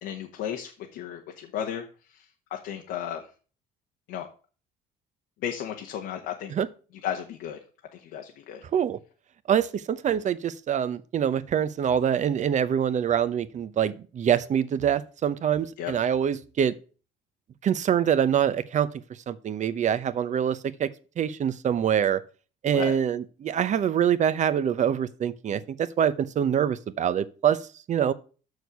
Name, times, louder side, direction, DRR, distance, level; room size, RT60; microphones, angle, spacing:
voice 1, 0.0-3.3 4.1-4.3 5.4-6.5 7.0-7.6 7.9-8.6 15.8-15.9 22.7-23.0, left 9 dB, 85° left, 1.3 m, -34 dB
voice 2, 9.5-16.7 17.6-18.9 19.3-22.2 22.6-27.6 27.9-28.1, right 9 dB, 45° right, 0.8 m, -25 dB
6.5 x 6.4 x 6.9 m
cardioid pair, 110°, 17 cm